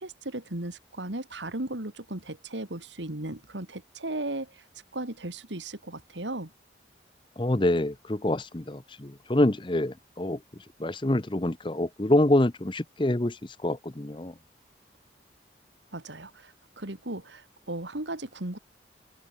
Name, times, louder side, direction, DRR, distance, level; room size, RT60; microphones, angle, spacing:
voice 1, 0.0-4.6 4.9-6.5 15.9-18.6, right 2 dB, 85° right, 2.8 m, -36 dB
voice 2, 7.4-10.4 10.8-14.3, left 1 dB, 25° left, 0.8 m, -26 dB
open air
head